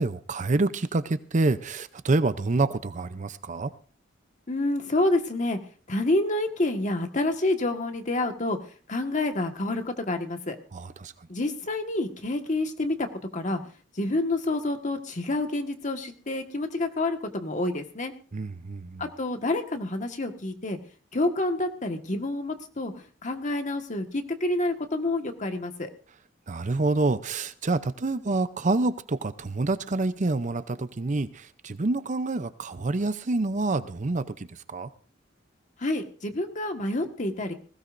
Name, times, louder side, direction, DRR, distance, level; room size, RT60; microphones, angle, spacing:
voice 1, 0.0-3.7 10.7-11.1 18.3-19.1 26.5-34.9, right 3 dB, 40° right, 13 dB, 0.6 m, -27 dB
voice 2, 4.5-5.6 5.9-8.6 8.9-10.6 11.3-13.1 13.3-13.6 14.0-18.1 19.0-20.8 21.1-22.9 23.2-25.9 35.8-37.5, left 2 dB, 40° left, 5 dB, 1.6 m, -28 dB
20.0 x 16.5 x 2.6 m, 0.40 s
head